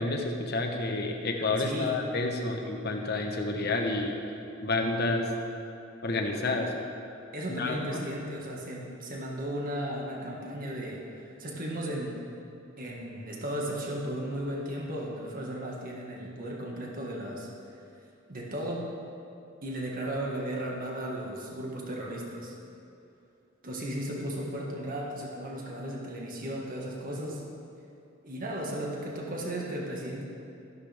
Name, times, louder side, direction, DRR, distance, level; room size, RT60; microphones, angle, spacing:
voice 1, 0.0-4.2 4.6-5.3 6.0-6.8 7.5-8.0, left 2 dB, 55° left, 3 dB, 1.1 m, -29 dB
voice 2, 1.6-2.0 7.3-12.2 12.8-17.5 18.3-18.9 19.6-22.6 23.6-27.4 28.2-30.2, right 1 dB, 45° right, -2 dB, 1.7 m, -35 dB
13.0 x 11.5 x 3.5 m, 2.7 s
head